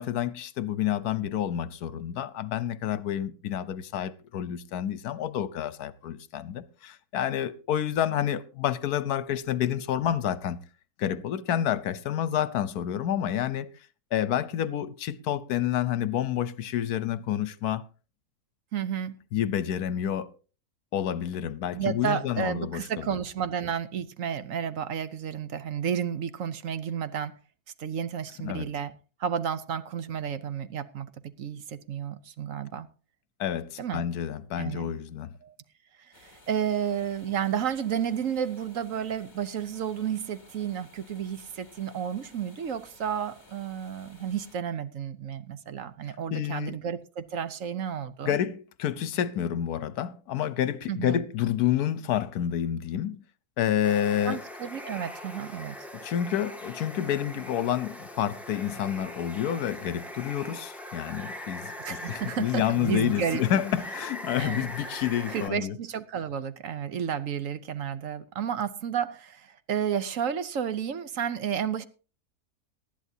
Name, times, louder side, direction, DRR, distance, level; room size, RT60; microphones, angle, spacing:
voice 1, 0.0-10.6 11.0-13.7 14.1-17.8 19.3-20.3 20.9-22.9 28.4-28.7 33.4-35.3 46.3-46.8 48.2-53.2 53.6-54.4 56.0-65.7, left 10 dB, 75° left, 1.3 m, -29 dB
voice 2, 18.7-19.2 21.7-27.4 27.8-28.9 29.2-32.9 33.8-34.1 34.5-35.0 35.4-35.5 36.1-48.4 50.9-51.2 54.3-55.9 61.8-63.4 64.4-64.7 65.3-71.9, right 8 dB, 60° right, 1.1 m, -32 dB
sound 1, 36.1-44.6, left 2 dB, 30° left, 2.6 m, -56 dB
Water, 53.8-65.5, left 1 dB, ahead, 1.9 m, -41 dB
19.0 x 12.5 x 2.7 m
omnidirectional pair, 1.7 m